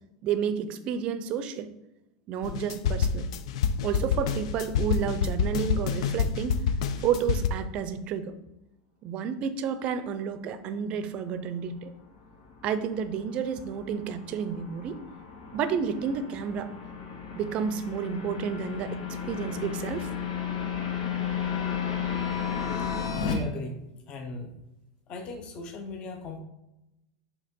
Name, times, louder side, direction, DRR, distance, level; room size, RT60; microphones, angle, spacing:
voice 1, 0.2-1.7 2.3-3.3 3.8-6.6 7.0-8.3 9.0-11.9 12.6-14.9 15.5-16.7 17.3-19.0 19.3-20.1, right 7 dB, 35° right, 11 dB, 0.5 m, -30 dB
sound 1, 2.4-7.5, left 6 dB, 70° left, 0.5 m, -27 dB
sound 2, 11.9-23.3, left 7 dB, 85° left, 1.5 m, -34 dB
voice 2, 23.2-24.5 25.1-26.4, left 2 dB, 30° left, 3 dB, 0.8 m, -37 dB
6.7 x 2.8 x 5.2 m, 0.91 s
supercardioid pair, 150°, 3 cm